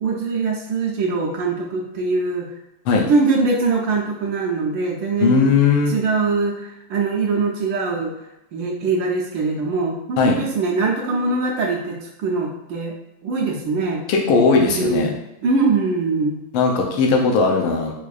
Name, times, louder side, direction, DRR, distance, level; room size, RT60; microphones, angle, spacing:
voice 1, 0.0-2.5 3.0-5.5 5.9-8.1 8.5-13.0 13.2-14.0 14.6-16.4, right 4 dB, 75° right, -2 dB, 1.1 m, -22 dB
voice 2, 5.2-6.0 10.2-10.4 14.1-15.1 16.5-17.9, left 4 dB, 85° left, 0 dB, 1.5 m, -17 dB
4.6 x 2.4 x 2.3 m, 0.87 s
omnidirectional pair, 2.3 m